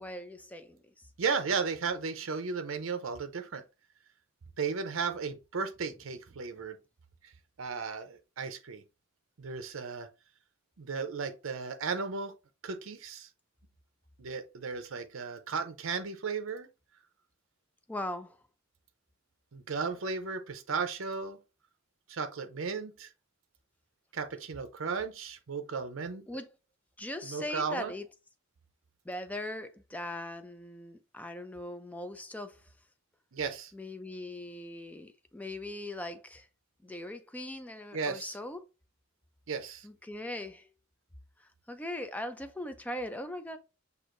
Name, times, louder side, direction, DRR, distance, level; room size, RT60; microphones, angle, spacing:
voice 1, 0.0-1.1 17.9-18.4 26.3-26.5 27.0-28.1 29.0-32.7 33.7-36.5 36.8-38.7 39.8-40.7 41.4-43.6, left 1 dB, 5° left, 0.4 m, -40 dB
voice 2, 1.2-3.6 4.6-6.8 7.2-7.3 7.6-8.8 9.4-10.1 10.8-12.3 12.6-13.3 14.2-16.7 19.5-21.4 22.1-23.1 24.1-26.2 27.2-27.9 33.3-33.7 37.9-38.3 39.5-39.9, right 5 dB, 70° right, 0.6 m, -35 dB
6.1 x 2.7 x 2.5 m
head